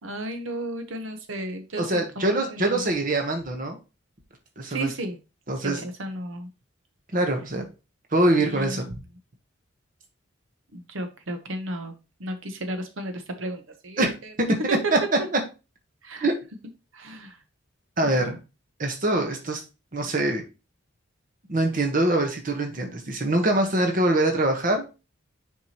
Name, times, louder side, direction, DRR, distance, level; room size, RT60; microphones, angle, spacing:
voice 1, 0.0-2.9 4.7-5.2 5.6-6.5 8.4-9.0 10.7-14.3 14.7-14.9 16.0-16.3 16.9-17.4, right 1 dB, 75° right, 8 dB, 1.0 m, -34 dB
voice 2, 1.8-3.8 4.6-4.9 5.5-5.8 7.1-7.7 8.1-8.9 14.0-14.1 14.4-14.5 14.9-15.0 15.3-15.4 16.2-16.3 18.0-18.4 18.8-19.6 19.9-20.4 21.5-24.8, right 1 dB, 40° right, 3 dB, 1.2 m, -23 dB
7.0 x 4.7 x 2.9 m, 0.29 s
head